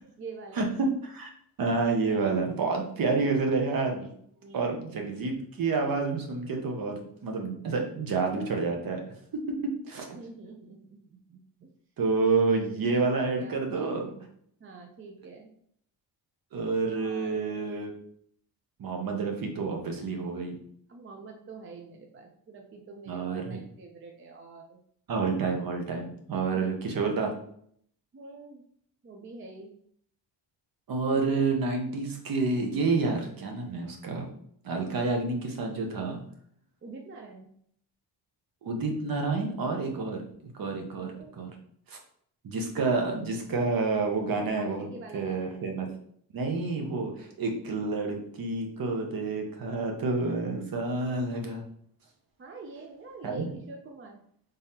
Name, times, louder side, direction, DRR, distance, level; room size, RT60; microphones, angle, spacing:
voice 1, 0.0-0.8 4.4-4.8 10.1-11.7 13.2-14.1 14.6-15.5 17.0-17.6 20.9-24.8 26.5-26.7 28.1-28.6 29.0-29.7 36.8-37.5 41.0-41.3 44.6-45.6 52.4-54.2, right 3 dB, 30° right, 2 dB, 0.5 m, -46 dB
voice 2, 0.6-1.3 1.6-4.1 4.5-9.0 9.9-10.2 12.0-14.1 16.5-17.9 18.8-20.6 23.1-23.6 25.1-27.3 30.9-34.3 34.6-36.2 38.6-40.2 40.5-41.1 41.4-41.5 41.9-42.0 42.4-44.9 45.1-45.9 46.3-51.6 53.2-53.5, right 3 dB, 50° right, 2 dB, 1.0 m, -29 dB
3.6 x 3.5 x 2.8 m, 0.65 s
cardioid pair, 105°, 44 cm